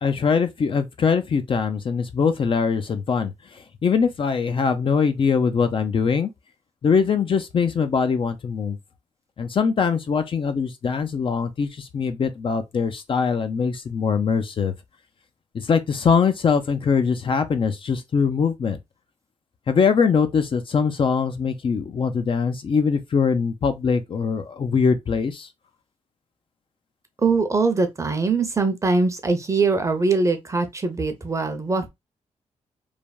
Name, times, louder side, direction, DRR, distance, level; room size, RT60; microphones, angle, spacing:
voice 1, 0.0-6.3 6.8-8.8 9.4-14.7 15.5-18.8 19.7-25.5, left 6 dB, 45° left, 0.4 m, -22 dB
voice 2, 27.2-31.9, right 3 dB, 25° right, 0.6 m, -22 dB
3.3 x 2.2 x 2.2 m
cardioid pair, 85°, 12 cm